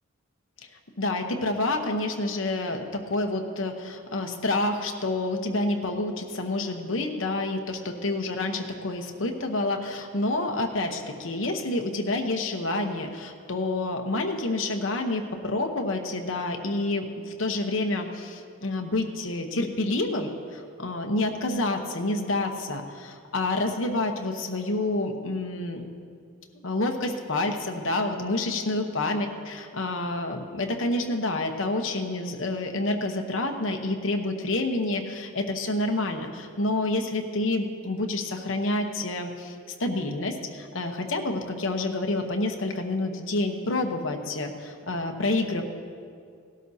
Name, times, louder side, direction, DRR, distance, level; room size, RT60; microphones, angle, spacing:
voice 1, 1.0-25.9 26.6-45.6, left 2 dB, 60° left, 3 dB, 1.0 m, -28 dB
17.5 x 12.5 x 2.8 m, 2.2 s
head